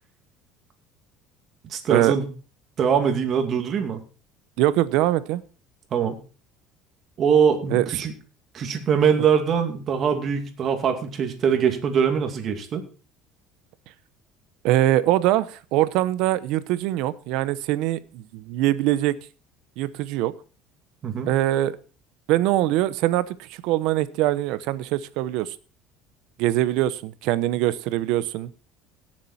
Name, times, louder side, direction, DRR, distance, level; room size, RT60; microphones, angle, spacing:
voice 1, 1.7-2.3 2.8-4.0 5.9-6.2 7.2-8.1 8.5-12.8 21.0-21.3, right 7 dB, 40° right, 5 dB, 2.3 m, -22 dB
voice 2, 4.6-5.4 7.7-7.9 14.6-19.1 19.8-20.3 21.3-21.8 22.3-25.5 26.4-28.5, right 14 dB, 70° right, 15 dB, 0.8 m, -23 dB
17.0 x 7.5 x 4.2 m, 0.36 s
cardioid pair, 135°, 0 cm